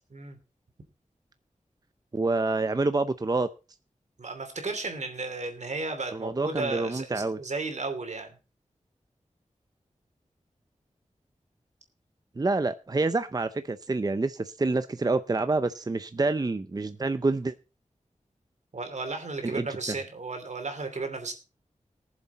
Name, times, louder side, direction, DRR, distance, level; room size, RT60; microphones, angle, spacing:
voice 1, 2.1-3.5 6.1-7.4 12.4-17.5 19.4-19.7, right 3 dB, 30° right, 12 dB, 0.6 m, -27 dB
voice 2, 4.2-8.3 18.7-21.3, right 3 dB, 65° right, 6 dB, 2.9 m, -34 dB
20.0 x 7.3 x 4.1 m, 0.32 s
wide cardioid pair, 90°, 13 cm